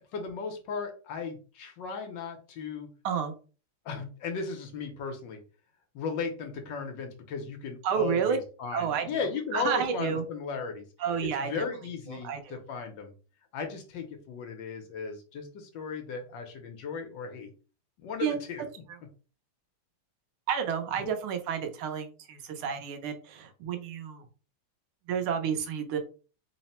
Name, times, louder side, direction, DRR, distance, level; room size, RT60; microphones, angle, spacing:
voice 1, 0.1-2.9 3.8-5.4 5.9-10.8 11.2-13.1 13.5-17.5 18.0-18.6, left 5 dB, 70° left, 4 dB, 1.3 m, -36 dB
voice 2, 7.8-8.4 8.7-9.3 9.5-10.2 11.0-11.6 12.1-12.6 18.2-18.4 18.9-19.0 20.5-24.3 25.1-26.0, right 7 dB, 85° right, 6 dB, 1.6 m, -30 dB
3.8 x 2.0 x 4.1 m, 0.36 s
omnidirectional pair, 2.3 m